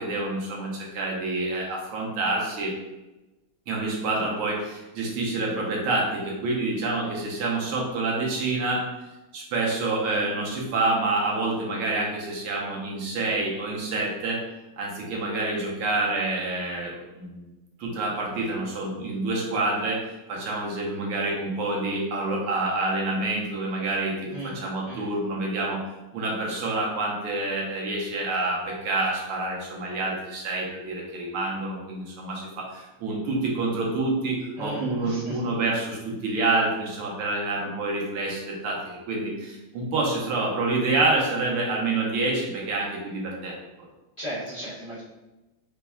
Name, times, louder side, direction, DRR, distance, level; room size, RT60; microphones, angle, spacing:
voice 1, 0.0-2.7 3.7-8.8 9.3-14.4 14.8-17.5 17.8-20.0 20.3-25.8 26.1-43.6, right 2 dB, 85° right, -2 dB, 1.8 m, -27 dB
voice 2, 24.3-25.1 34.6-35.4 44.2-45.0, equal, 30° left, -11 dB, 1.1 m, -35 dB
5.6 x 3.2 x 2.3 m, 1.0 s
omnidirectional pair, 2.3 m